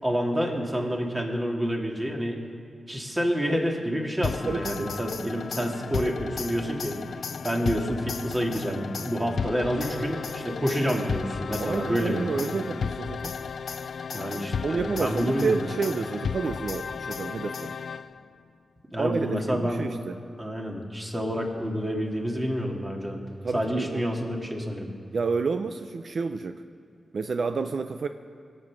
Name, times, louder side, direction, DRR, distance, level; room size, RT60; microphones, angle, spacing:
voice 1, 0.0-2.4 2.9-7.0 7.4-12.3 14.1-15.7 18.9-19.9 20.4-23.2 23.5-24.9, equal, 20° right, 0 dB, 2.5 m, -28 dB
sound 1, 4.2-18.3, left 6 dB, 75° left, 0.4 m, -34 dB
voice 2, 4.5-5.0 11.6-13.4 14.6-17.7 19.0-20.2 23.4-24.0 25.1-26.6 27.1-28.1, right 4 dB, 65° right, 9 dB, 0.5 m, -29 dB
20.0 x 7.7 x 6.2 m, 2.5 s
cardioid pair, 60°, 0 cm